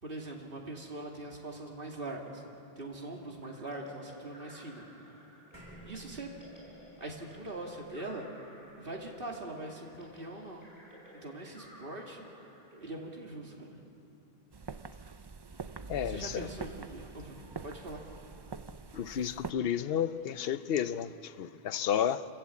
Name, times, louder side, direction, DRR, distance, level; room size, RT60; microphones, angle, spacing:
voice 1, 0.0-2.4 2.8-4.8 5.8-6.3 7.0-8.3 8.7-10.6 11.1-12.2 12.8-13.8 16.0-18.0, right 2 dB, 60° right, 2.7 m, -42 dB
sound 1, 3.4-14.0, left 1 dB, 35° left, 6.0 m, -55 dB
sound 2, 5.5-10.2, right 3 dB, 20° right, 7.2 m, -56 dB
sound 3, 14.5-19.5, right 4 dB, 35° right, 0.4 m, -44 dB
voice 2, 15.9-16.5 18.9-22.2, left 9 dB, 65° left, 0.9 m, -32 dB
29.5 x 14.5 x 8.5 m
omnidirectional pair, 1.1 m